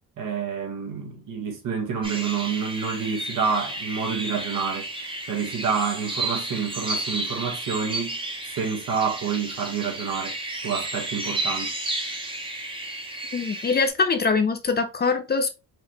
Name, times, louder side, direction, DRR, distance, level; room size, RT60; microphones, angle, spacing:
voice 1, 0.2-4.9 5.3-8.2 8.5-10.4 10.6-11.7, right 6 dB, 65° right, 1.6 m, -28 dB
sound 1, 2.0-13.9, right 2 dB, 15° right, 1.0 m, -32 dB
voice 2, 13.3-15.5, left 4 dB, 30° left, 0.7 m, -23 dB
5.0 x 3.1 x 3.4 m
cardioid pair, 145°, 33 cm